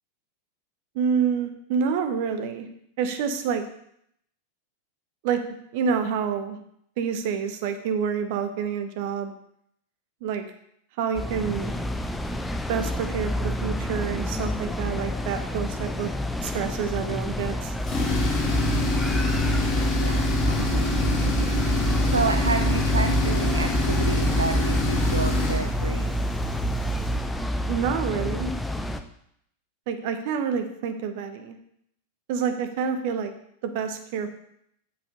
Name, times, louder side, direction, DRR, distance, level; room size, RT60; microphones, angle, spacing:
voice 1, 0.9-2.7 3.0-3.6 5.2-5.4 5.7-6.6 7.0-9.3 10.2-10.4 11.0-11.7 12.7-16.1 16.4-17.7 27.7-28.5 29.9-31.6 32.3-33.3 33.6-34.4, right 6 dB, 50° right, 8 dB, 0.9 m, -28 dB
sound 1, 11.1-29.0, left 1 dB, 5° left, 0.5 m, -29 dB
Tools, 17.8-27.3, left 1 dB, 25° left, 1.7 m, -25 dB
voice 2, 19.9-21.2 21.6-26.1, right 3 dB, 75° right, 6 dB, 0.4 m, -30 dB
7.7 x 7.0 x 3.8 m, 0.72 s
figure-of-eight pair, 90°, 0 cm